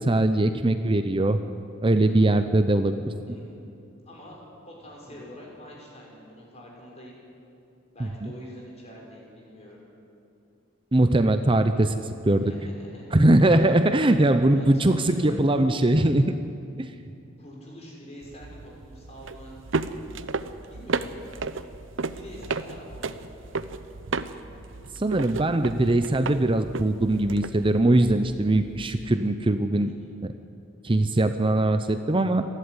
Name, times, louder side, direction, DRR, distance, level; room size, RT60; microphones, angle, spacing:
voice 1, 0.0-1.4 1.8-3.1 10.9-12.0 12.3-12.5 13.1-16.4 16.8-16.9 25.0-29.9 30.2-30.3 30.8-32.4, right 1 dB, 25° right, 9 dB, 0.7 m, -21 dB
voice 2, 2.0-2.4 3.3-3.6 4.0-4.4 4.6-7.2 7.9-9.8 12.4-13.2 13.5-13.7 14.5-15.7 17.4-19.5 20.7-21.2 22.1-23.5 29.8-30.1, equal, 35° left, -2 dB, 6.2 m, -45 dB
sound 1, 18.2-29.1, right 4 dB, 70° right, 0.8 m, -34 dB
27.0 x 12.0 x 9.7 m, 2.6 s
head